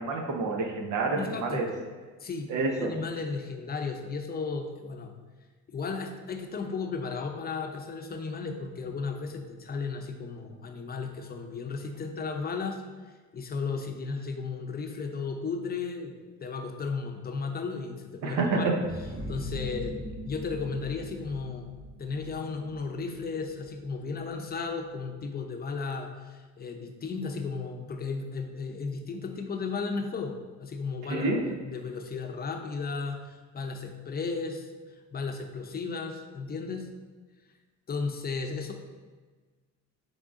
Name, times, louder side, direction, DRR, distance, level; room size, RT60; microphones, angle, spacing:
voice 1, 0.0-1.7 2.5-2.9 18.2-18.8 31.1-31.4, right 3 dB, 85° right, 2 dB, 0.7 m, -28 dB
voice 2, 1.2-1.7 2.2-5.1 5.7-12.8 13.3-18.7 19.3-20.0 20.3-21.7 22.0-36.9 37.9-38.7, left 4 dB, 30° left, 4 dB, 0.6 m, -34 dB
sound 1, 18.8-24.3, right 1 dB, 20° right, 0.6 m, -42 dB
3.7 x 3.6 x 3.6 m, 1.4 s
cardioid pair, 90°, 30 cm